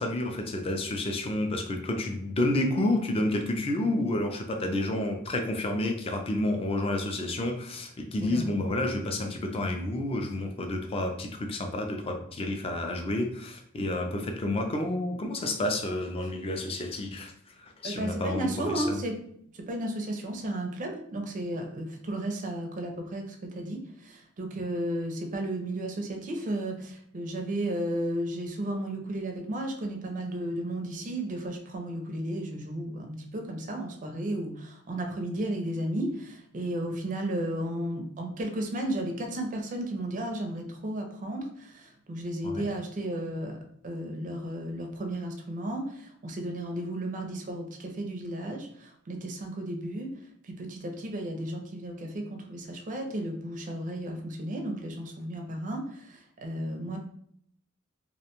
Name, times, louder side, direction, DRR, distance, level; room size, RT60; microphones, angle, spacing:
voice 1, 0.0-19.0 42.4-42.7, left 1 dB, 25° left, 4 dB, 0.3 m, -30 dB
voice 2, 17.8-19.2 19.6-50.1 50.4-57.0, right 1 dB, 35° right, 3 dB, 0.4 m, -34 dB
2.5 x 2.1 x 2.9 m, 0.67 s
head